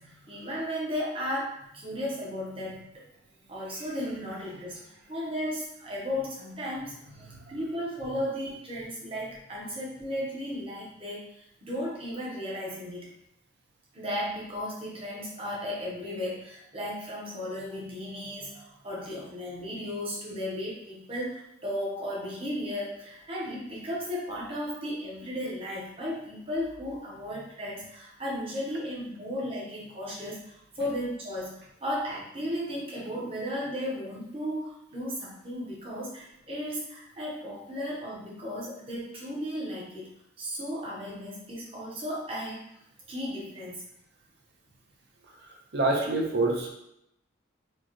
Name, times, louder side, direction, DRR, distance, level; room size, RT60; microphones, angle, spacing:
voice 1, 0.0-3.1 3.5-4.8 5.1-13.1 13.9-42.6 43.1-43.8, equal, 30° right, -5 dB, 0.9 m, -35 dB
voice 2, 45.4-46.7, right 2 dB, 55° right, -1 dB, 0.8 m, -27 dB
4.6 x 2.3 x 3.0 m, 0.79 s
head